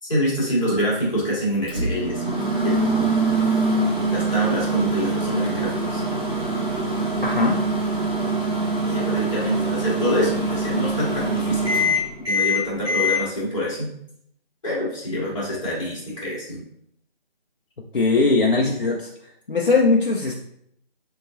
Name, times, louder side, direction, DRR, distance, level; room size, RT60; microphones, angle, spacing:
voice 1, 0.0-3.2 4.1-6.0 8.9-11.7 12.3-13.9 14.6-16.6, equal, 30° left, -5 dB, 1.7 m, -26 dB
Microwave oven, 1.7-13.2, right 1 dB, 25° right, 1.4 m, -23 dB
voice 2, 7.2-7.6 12.2-12.3 17.9-19.1 19.5-20.4, left 3 dB, 60° left, -1 dB, 0.5 m, -20 dB
5.3 x 3.3 x 2.5 m, 0.72 s
figure-of-eight pair, 160°, 30 cm